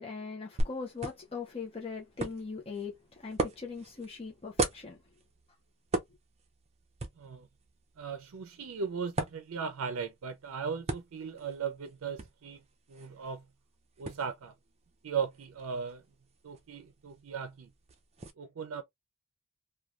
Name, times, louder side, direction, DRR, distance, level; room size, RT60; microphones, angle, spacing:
voice 1, 0.0-5.0, left 5 dB, 30° left, 0.6 m, -40 dB
sound 1, 0.6-18.3, right 2 dB, 30° right, 0.5 m, -40 dB
voice 2, 7.2-7.5 8.0-12.6 12.9-13.4 14.0-14.5 15.0-16.0 16.4-17.7 18.4-18.8, right 6 dB, 90° right, 0.4 m, -37 dB
3.0 x 2.3 x 2.4 m
head